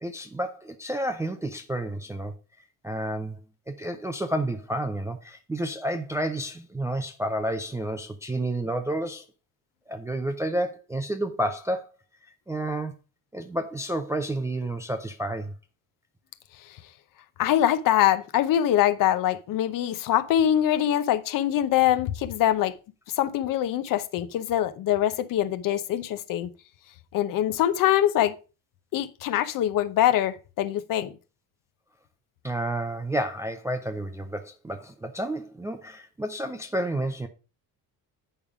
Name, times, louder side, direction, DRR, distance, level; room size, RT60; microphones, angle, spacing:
voice 1, 0.0-2.3 2.8-3.4 3.7-9.3 9.9-11.9 12.5-12.9 13.3-15.5 32.4-37.3, right 1 dB, 10° right, 0.3 m, -30 dB
voice 2, 17.4-22.7 23.1-26.5 27.1-28.3 28.9-31.2, left 11 dB, 55° left, 0.8 m, -24 dB
8.9 x 5.3 x 4.8 m
cardioid pair, 175°, 40 cm